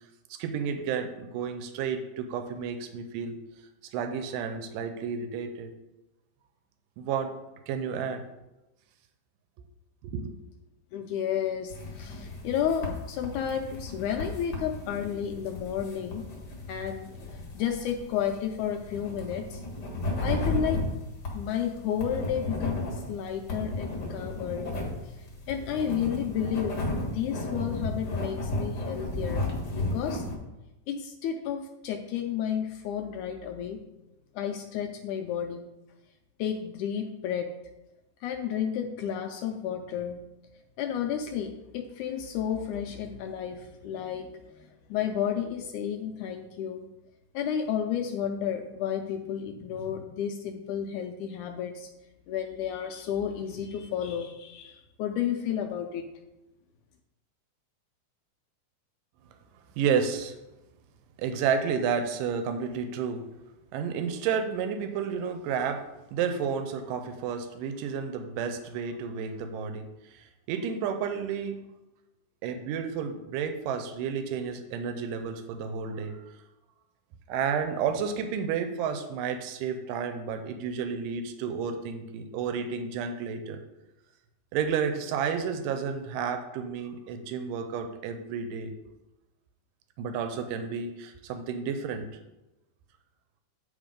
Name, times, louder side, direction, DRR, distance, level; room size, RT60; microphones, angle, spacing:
voice 1, 0.3-3.4 3.9-5.7 7.0-7.3 7.7-8.2 10.0-10.4 59.8-60.4 61.2-63.2 63.7-65.8 66.1-69.9 70.5-71.6 72.4-76.3 77.3-83.6 84.5-88.7 90.0-92.1, right 6 dB, 90° right, 7 dB, 2.3 m, -31 dB
voice 2, 10.9-16.2 16.7-19.6 20.2-20.8 21.3-24.7 25.5-26.8 27.1-29.4 29.7-30.2 30.9-33.8 34.4-35.7 36.4-37.5 38.2-40.2 40.8-46.9 47.3-51.9 52.3-56.0, left 8 dB, 80° left, 4 dB, 1.9 m, -32 dB
sound 1, 11.7-30.4, left 2 dB, 40° left, 1.6 m, -34 dB
9.0 x 3.8 x 5.0 m, 0.99 s
omnidirectional pair, 3.8 m